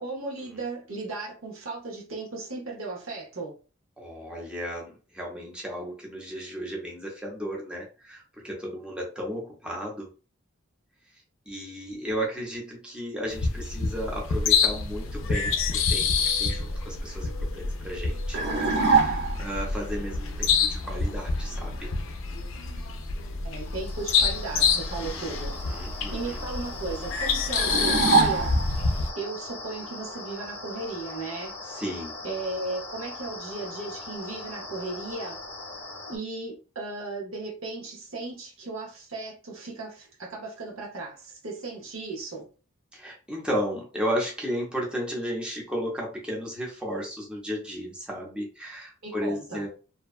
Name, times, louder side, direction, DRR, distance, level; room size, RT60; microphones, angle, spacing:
voice 1, 0.0-3.6 23.4-25.5 26.1-28.5 29.1-31.5 32.2-35.4 36.1-42.5 49.0-49.6, right 3 dB, 85° right, 0.8 m, -36 dB
voice 2, 4.0-10.1 11.5-18.4 18.8-21.9 25.0-26.4 31.7-32.2 42.9-49.7, equal, 5° right, 0.6 m, -34 dB
sound 1, 13.3-29.1, left 5 dB, 75° left, 0.4 m, -27 dB
sound 2, 18.3-19.5 27.6-28.9, right 4 dB, 55° right, 0.5 m, -23 dB
sound 3, 23.6-36.2, left 2 dB, 10° left, 1.0 m, -40 dB
2.6 x 2.2 x 2.3 m
head